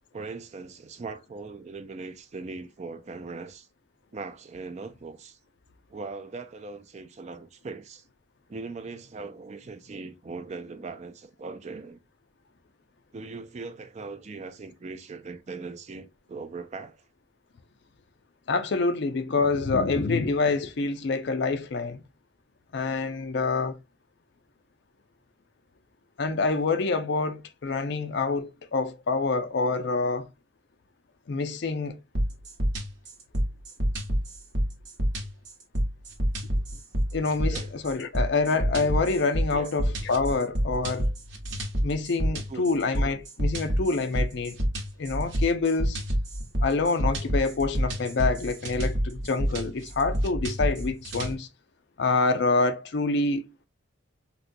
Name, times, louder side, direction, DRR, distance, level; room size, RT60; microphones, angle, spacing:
voice 1, 0.1-3.7 4.1-5.4 5.9-8.0 8.5-12.0 13.1-17.0 37.5-37.7 39.5-39.7 42.5-42.7 51.3-51.4, right 4 dB, 35° right, 0.3 m, -40 dB
voice 2, 18.5-22.0 22.7-23.8 26.2-30.2 31.3-32.0 37.1-41.1 41.8-44.6 45.0-46.0 46.6-51.5 52.0-53.5, left 3 dB, 55° left, 0.5 m, -26 dB
sound 1, 32.2-51.3, equal, 60° right, 1.0 m, -28 dB
4.0 x 2.2 x 2.5 m
head